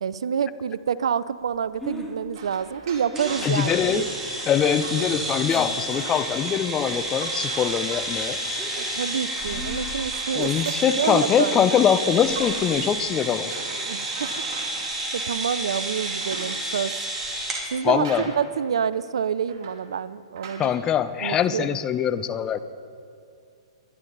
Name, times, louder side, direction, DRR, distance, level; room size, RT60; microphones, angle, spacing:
voice 1, 0.0-4.1 8.8-10.5 10.9-11.6 13.9-14.3 15.1-17.1 17.7-18.1 18.4-20.7 21.2-21.8, right 7 dB, 75° right, 17 dB, 0.5 m, -27 dB
Breathing, 1.5-5.1 5.5-6.0 6.2-7.2 7.6-10.2, equal, ahead, 2.1 m, -40 dB
sound 1, 2.3-6.4 6.6-13.0 13.5-15.5 16.0-16.9 17.6-17.7 18.0-18.6 18.9-19.0 19.5-19.9 20.4-20.8, right 5 dB, 50° right, 2.8 m, -42 dB
sound 2, 3.2-17.6, right 1 dB, 15° right, 3.1 m, -30 dB
voice 2, 3.4-4.1 4.5-8.4 10.3-13.5 17.8-18.3 20.6-22.6, left 8 dB, 25° left, 13 dB, 0.6 m, -23 dB
22.0 x 10.5 x 4.0 m, 2.4 s
hypercardioid pair, 120°, 3 cm